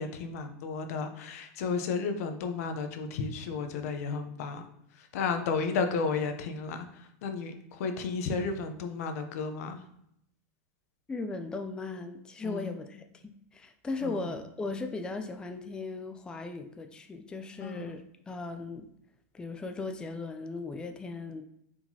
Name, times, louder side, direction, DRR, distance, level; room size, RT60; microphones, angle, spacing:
voice 1, 0.0-4.6 5.0-9.8 12.4-12.7 14.0-14.3 17.6-17.9, left 5 dB, 70° left, 7 dB, 0.6 m, -33 dB
voice 2, 11.1-13.0 13.5-18.9 19.3-21.4, left 3 dB, 10° left, 6 dB, 0.3 m, -37 dB
4.6 x 3.7 x 2.8 m, 0.76 s
supercardioid pair, 135°, 8 cm